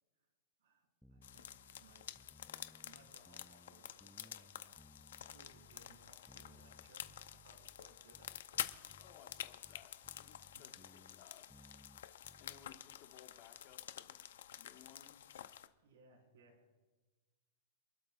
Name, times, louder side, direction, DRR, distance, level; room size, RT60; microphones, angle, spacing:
voice 1, 0.6-2.1 2.8-4.8 5.3-8.7 10.3-10.7 12.7-12.8 15.8-16.7, right 3 dB, 85° right, 0 dB, 5.0 m, -66 dB
sound 1, 1.0-12.8, equal, ahead, 0.4 m, -64 dB
sound 2, 1.2-15.7, left 10 dB, 80° left, 0.7 m, -49 dB
voice 2, 9.0-11.5 12.4-14.2 14.6-15.2, left 9 dB, 35° left, 3 dB, 1.6 m, -62 dB
27.5 x 12.5 x 2.5 m, 1.2 s
supercardioid pair, 175°, 0 cm